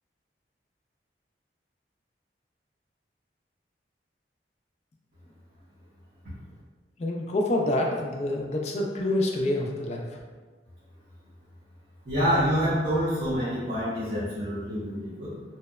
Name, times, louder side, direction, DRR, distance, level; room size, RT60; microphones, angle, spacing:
voice 1, 7.0-10.0, left 1 dB, 40° left, 0 dB, 0.3 m, -27 dB
voice 2, 12.1-15.3, equal, 50° right, -11 dB, 0.7 m, -27 dB
2.7 x 2.0 x 2.3 m, 1.4 s
head